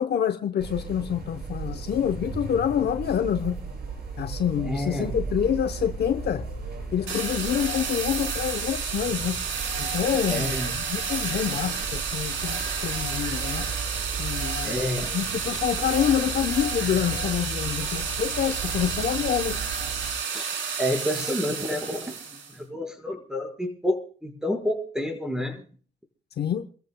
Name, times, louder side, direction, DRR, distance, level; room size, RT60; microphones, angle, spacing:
voice 1, 0.0-3.6 4.2-6.5 6.9-9.4 9.8-13.7 14.2-14.8 15.1-19.7 26.4-26.7, left 9 dB, 55° left, 0.8 m, -27 dB
sound 1, 0.6-20.1, right 4 dB, 50° right, 6.4 m, -36 dB
voice 2, 4.6-5.3 10.3-10.7 14.6-15.1 20.3-25.6, left 1 dB, 5° right, 4.8 m, -29 dB
sound 2, 7.1-22.5, right 6 dB, 70° right, 3.7 m, -31 dB
29.0 x 14.5 x 2.2 m
cardioid pair, 90°, 20 cm